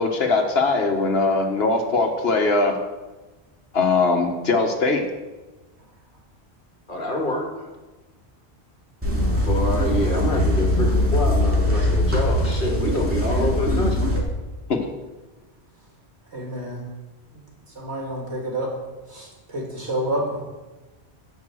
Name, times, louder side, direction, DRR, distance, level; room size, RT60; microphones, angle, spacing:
voice 1, 0.0-2.8 3.7-5.1 14.7-14.9, left 3 dB, 70° left, 4 dB, 1.5 m, -21 dB
voice 2, 6.9-7.7 9.4-14.1, left 1 dB, 50° left, 1 dB, 2.0 m, -26 dB
sound 1, 9.0-14.2, left 1 dB, 10° right, 2.3 m, -21 dB
voice 3, 16.3-16.8 17.3-17.4 17.7-18.7 19.1-20.4, right 1 dB, 85° right, -2 dB, 3.0 m, -29 dB
15.5 x 5.3 x 6.3 m, 1.2 s
omnidirectional pair, 1.1 m